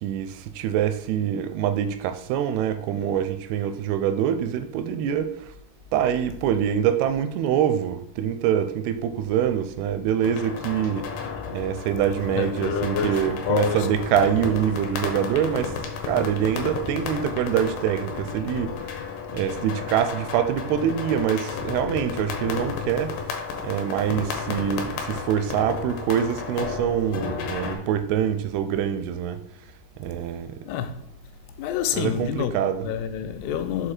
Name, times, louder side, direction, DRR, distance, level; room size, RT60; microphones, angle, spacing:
voice 1, 0.0-5.5 5.9-11.1 11.5-15.8 16.0-18.9 19.3-23.1 23.6-29.4 30.0-30.6 31.9-32.9, right 9 dB, 90° right, 2.6 m, -25 dB
sound 1, 10.2-27.8, left 5 dB, 75° left, 2.8 m, -33 dB
voice 2, 12.3-14.0 24.0-24.2 30.6-31.1 31.6-33.9, left 9 dB, 90° left, 2.7 m, -28 dB
6.7 x 4.6 x 4.4 m
omnidirectional pair, 4.6 m